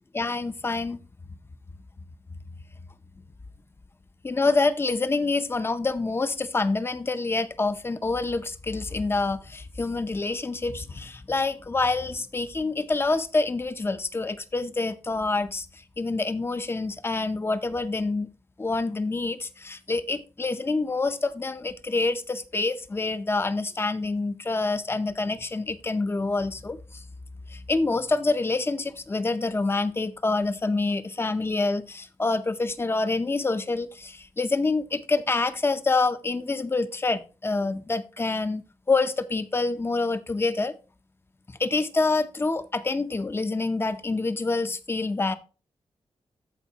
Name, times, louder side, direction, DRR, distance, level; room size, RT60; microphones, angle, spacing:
voice 1, 0.1-1.0 4.2-18.3 18.6-27.0 27.5-38.6 38.9-40.7 41.6-45.4, left 3 dB, 20° left, 0.6 m, -27 dB
14.0 x 5.1 x 2.8 m
wide cardioid pair, 175°, 11 cm